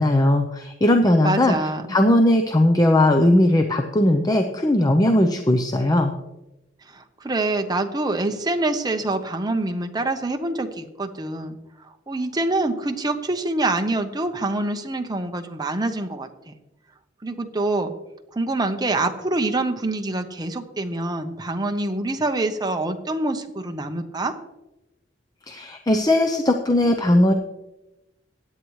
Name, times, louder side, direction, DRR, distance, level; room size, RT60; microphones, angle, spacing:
voice 1, 0.0-1.6 1.9-6.1 25.5-27.3, left 1 dB, 20° left, 5 dB, 0.7 m, -18 dB
voice 2, 1.2-1.8 6.9-11.6 12.1-16.5 17.2-17.9 18.3-24.3, right 2 dB, 20° right, 6 dB, 0.9 m, -25 dB
16.5 x 9.6 x 3.2 m, 0.96 s
head